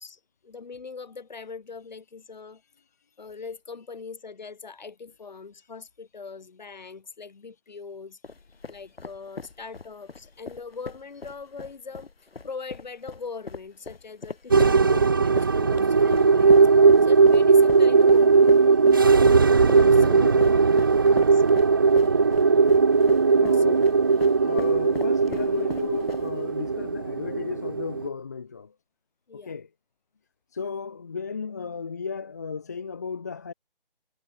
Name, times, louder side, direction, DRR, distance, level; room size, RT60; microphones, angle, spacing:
voice 1, 0.0-2.6 3.2-8.2 8.7-12.1 12.4-18.6 19.7-20.2 21.1-21.4 23.6-23.8 29.3-29.5, left 5 dB, 50° left, 4.9 m, -41 dB
sound 1, 8.2-26.5, left 4 dB, 85° left, 4.1 m, -39 dB
sound 2, 14.5-28.1, right 4 dB, 20° right, 1.0 m, -18 dB
voice 2, 19.6-20.7 22.0-22.2 23.4-23.9 24.4-28.7 29.3-29.7 30.5-33.5, left 5 dB, 15° left, 1.1 m, -34 dB
hypercardioid pair, 175°, 29 cm